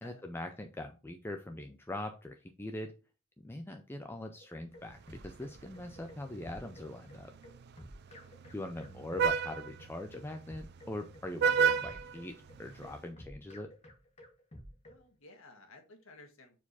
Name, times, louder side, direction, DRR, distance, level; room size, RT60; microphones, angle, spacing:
voice 1, 0.0-2.9 3.4-7.3 8.5-13.7, left 1 dB, 10° left, 4 dB, 0.5 m, -42 dB
sound 1, 4.4-15.0, equal, 30° left, 1.6 m, -52 dB
Vehicle horn car horn honking, 4.9-13.0, right 6 dB, 50° right, 0.4 m, -35 dB
voice 2, 8.0-8.6 14.9-16.6, left 2 dB, 70° left, 4 dB, 1.7 m, -56 dB
4.8 x 4.5 x 5.5 m, 0.32 s
head